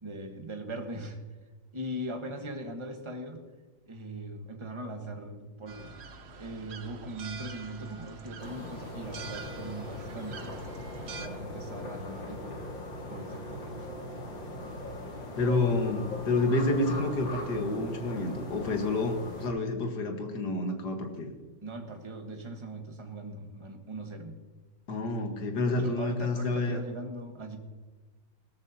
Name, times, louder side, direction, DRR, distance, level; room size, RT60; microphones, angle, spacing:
voice 1, 0.0-1.2 1.7-3.4 3.9-6.0 6.3-10.6 11.0-12.7 13.1-13.9 21.6-24.4 25.6-27.6, right 1 dB, 20° right, 4 dB, 1.1 m, -40 dB
sound 1, 5.7-11.3, right 4 dB, 55° right, 0.7 m, -46 dB
sound 2, 8.4-19.5, left 1 dB, 80° left, 2.7 m, -40 dB
voice 2, 15.4-21.3 24.9-26.8, left 2 dB, 60° left, 4 dB, 2.0 m, -29 dB
17.0 x 13.5 x 2.8 m, 1.3 s
omnidirectional pair, 2.1 m